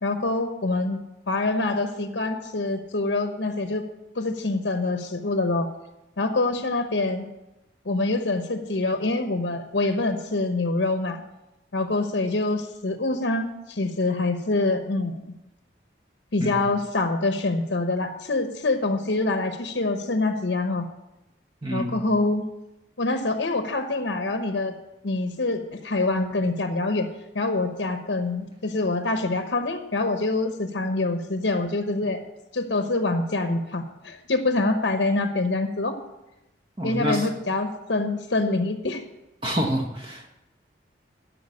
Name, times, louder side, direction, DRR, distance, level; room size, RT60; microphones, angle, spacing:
voice 1, 0.0-1.0 1.3-3.8 4.1-5.7 6.2-7.3 7.8-11.2 11.7-15.2 16.3-20.8 21.7-22.5 23.0-24.7 25.0-27.1 27.3-32.2 32.5-36.0 36.8-39.0, left 2 dB, 80° left, 7 dB, 1.0 m, -25 dB
voice 2, 21.6-22.0 36.8-37.3 39.4-40.3, equal, 30° right, 2 dB, 1.3 m, -27 dB
13.0 x 5.8 x 8.3 m, 0.95 s
head